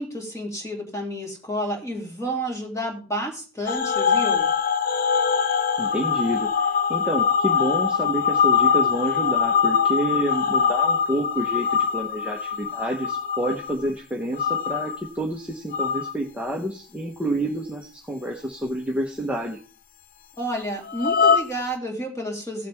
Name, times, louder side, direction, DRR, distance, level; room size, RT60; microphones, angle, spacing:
voice 1, 0.0-4.5 20.4-22.7, equal, 15° left, 0 dB, 2.9 m, -30 dB
sound 1, 3.7-13.9 14.4-15.1 15.7-16.1 20.9-21.4, left 6 dB, 45° left, 0.6 m, -22 dB
voice 2, 5.8-6.5 6.9-19.6, right 1 dB, 5° right, -1 dB, 1.1 m, -28 dB
16.0 x 7.5 x 3.5 m, 0.36 s
head